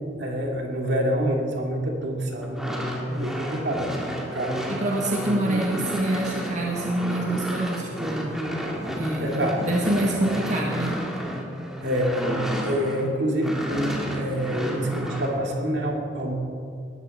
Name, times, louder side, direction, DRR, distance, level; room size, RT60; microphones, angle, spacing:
voice 1, 0.2-4.0 4.3-4.6 4.9-5.0 9.2-9.7 10.3-10.4 11.8-16.3, equal, 65° right, 0 dB, 2.6 m, -27 dB
sound 1, 2.4-13.1 13.4-15.3, equal, ahead, 2.0 m, -31 dB
voice 2, 4.7-8.4 9.0-11.0, right 1 dB, 40° right, -2 dB, 1.6 m, -26 dB
20.0 x 14.0 x 4.3 m, 2.4 s
head